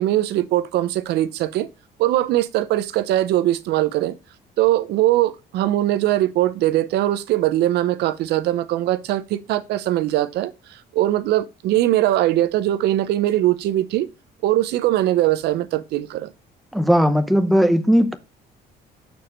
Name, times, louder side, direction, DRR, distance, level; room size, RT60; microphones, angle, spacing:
voice 1, 0.0-1.7 2.0-4.1 4.6-14.1 14.4-16.3, right 14 dB, 75° right, 0.7 m, -21 dB
voice 2, 16.7-18.2, equal, ahead, 0.8 m, -17 dB
6.9 x 4.5 x 5.1 m
cardioid pair, 110°, 17 cm